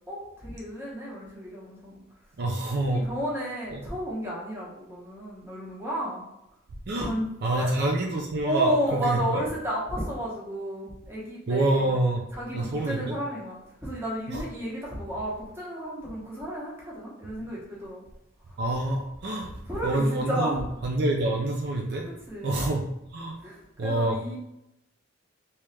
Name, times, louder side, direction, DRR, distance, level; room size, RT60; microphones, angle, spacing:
voice 1, 0.1-2.0 2.9-6.2 7.0-7.7 8.4-11.9 12.3-13.6 13.8-18.0 18.5-18.6 19.7-20.6 22.0-22.6 23.4-24.4, equal, 10° right, -5 dB, 1.0 m, -32 dB
voice 2, 2.4-3.1 3.7-3.8 6.9-7.1 7.4-9.4 11.5-12.2 12.5-13.2 14.3-14.4 18.6-19.5 19.8-22.1 22.4-22.8 23.1-23.4 23.8-24.2, right 2 dB, 55° right, 1 dB, 0.5 m, -27 dB
3.4 x 2.9 x 3.3 m, 0.87 s
head